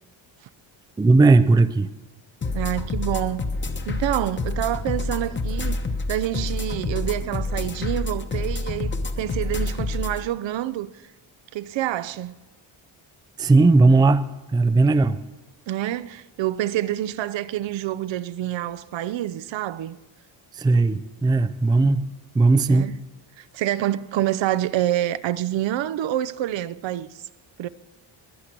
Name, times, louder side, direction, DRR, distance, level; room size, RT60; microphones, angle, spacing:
voice 1, 1.0-1.9 13.4-15.2 20.5-22.9, right 3 dB, 10° right, 0.4 m, -17 dB
sound 1, 2.4-10.2, left 3 dB, 25° left, 1.1 m, -28 dB
voice 2, 2.5-3.4 3.9-5.8 6.1-10.9 11.5-12.4 15.7-20.0 22.7-22.9 23.4-27.1 27.6-27.7, right 13 dB, 65° right, 0.7 m, -27 dB
22.0 x 8.3 x 6.0 m
cardioid pair, 135°, 48 cm